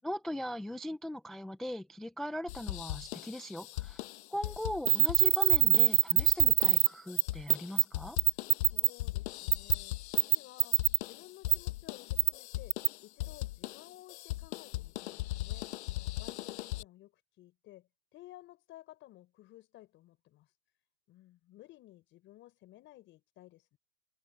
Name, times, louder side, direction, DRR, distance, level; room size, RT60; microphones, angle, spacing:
voice 1, 0.0-4.0 4.3-8.2, equal, ahead, 0.3 m, -39 dB
sound 1, 2.5-16.8, left 17 dB, 55° left, 6.6 m, -39 dB
voice 2, 3.8-4.1 8.3-15.7 16.2-20.6 21.1-23.8, left 15 dB, 30° left, 6.3 m, -56 dB
sound 2, 4.9-6.9 7.2-7.3 7.5-7.8 8.2-8.9 9.5-9.7 10.2-11.0 11.5-11.6 12.2-12.3 12.7-12.9, right 17 dB, 60° right, 0.5 m, -23 dB
supercardioid pair, 150°, 39 cm